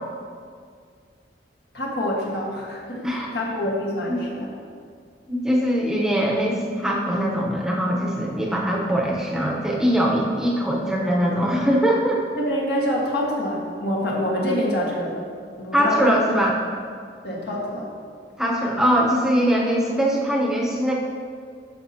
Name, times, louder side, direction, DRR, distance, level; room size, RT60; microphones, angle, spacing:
voice 1, 1.7-3.1 3.3-4.5 12.4-15.2 15.6-16.1 17.2-17.9, left 1 dB, 65° left, -3 dB, 1.5 m, -26 dB
voice 2, 5.3-12.2 15.7-16.6 18.4-20.9, equal, 5° right, -2 dB, 0.8 m, -22 dB
11.5 x 5.4 x 2.8 m, 2.1 s
head